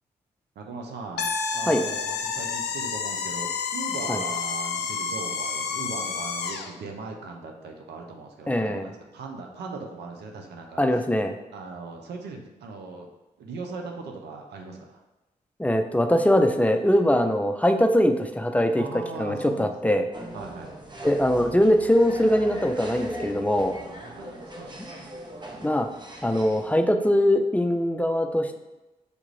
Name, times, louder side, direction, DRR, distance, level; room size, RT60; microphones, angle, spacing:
voice 1, 0.6-11.0 11.5-13.1 13.4-15.0 18.8-20.1 20.3-20.7 23.9-25.2, right 3 dB, 85° right, 2 dB, 0.6 m, -39 dB
sound 1, 1.2-6.7, left 5 dB, 80° left, 0.4 m, -30 dB
voice 2, 8.5-8.9 10.8-11.3 15.6-18.8 19.2-20.1 21.0-23.8 25.6-25.9 26.2-28.6, equal, 10° left, 6 dB, 0.5 m, -22 dB
sound 2, 20.1-26.7, right 1 dB, 25° right, 0.8 m, -39 dB
6.5 x 2.4 x 3.1 m, 1.1 s
supercardioid pair, 50°, 17 cm